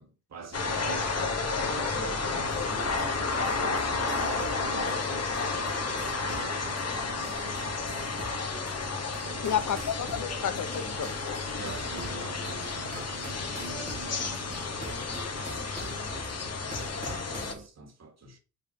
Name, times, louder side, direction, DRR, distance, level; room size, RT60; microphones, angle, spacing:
voice 1, 0.0-8.4 9.2-9.8 11.6-16.4 17.0-18.4, right 5 dB, 60° right, 1.7 m, -45 dB
sound 1, 0.5-17.5, left 4 dB, 55° left, 1.3 m, -32 dB
sound 2, 2.5-17.7, right 1 dB, 25° right, 1.3 m, -44 dB
voice 2, 9.4-11.4, left 8 dB, 75° left, 0.7 m, -31 dB
5.6 x 3.5 x 5.7 m
cardioid pair, 85°, 30 cm